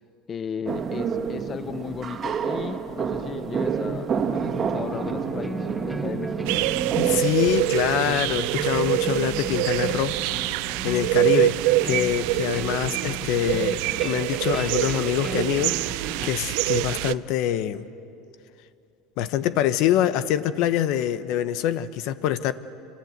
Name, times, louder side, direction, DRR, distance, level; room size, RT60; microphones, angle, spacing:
voice 1, 0.3-6.4, left 7 dB, 30° left, 13 dB, 0.6 m, -35 dB
sound 1, 0.7-7.2, right 6 dB, 30° right, 2.1 m, -28 dB
sound 2, 4.5-16.3, equal, ahead, 1.0 m, -37 dB
sound 3, 6.5-17.1, right 19 dB, 70° right, 0.5 m, -25 dB
voice 2, 7.0-10.6 10.8-11.6 11.8-17.9 19.2-22.5, left 11 dB, 60° left, 13 dB, 1.0 m, -25 dB
27.0 x 26.0 x 8.1 m, 2.6 s
supercardioid pair, 130°, 0 cm